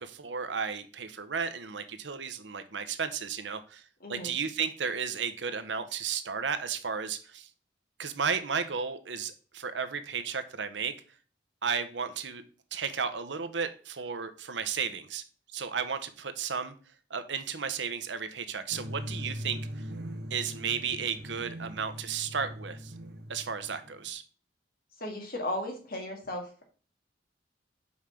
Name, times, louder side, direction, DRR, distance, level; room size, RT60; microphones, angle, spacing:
voice 1, 0.0-3.8 4.1-7.5 8.0-10.9 11.6-12.4 12.7-15.2 15.5-16.7 17.1-19.6 20.3-22.9 23.3-24.2, right 6 dB, 90° right, 10 dB, 0.9 m, -33 dB
voice 2, 4.0-4.3 25.0-26.6, left 1 dB, 55° left, 2 dB, 2.1 m, -36 dB
sound 1, 18.7-24.1, equal, 65° right, 1.0 m, -41 dB
5.7 x 4.9 x 5.8 m, 0.39 s
head